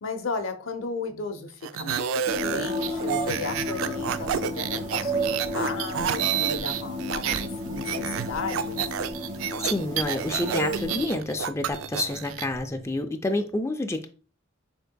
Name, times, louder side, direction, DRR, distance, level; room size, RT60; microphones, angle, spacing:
voice 1, 0.0-2.1 2.3-8.8, left 3 dB, 80° left, 7 dB, 0.7 m, -34 dB
sound 1, 1.6-7.5 7.8-12.5, right 9 dB, 80° right, 0.4 m, -29 dB
sound 2, 2.3-11.0, equal, 35° right, 1.9 m, -33 dB
sound 3, 2.8-12.9, right 1 dB, 55° right, 1.8 m, -46 dB
voice 2, 9.6-14.1, left 2 dB, 15° left, 6 dB, 0.4 m, -28 dB
6.6 x 3.6 x 2.2 m, 0.37 s
head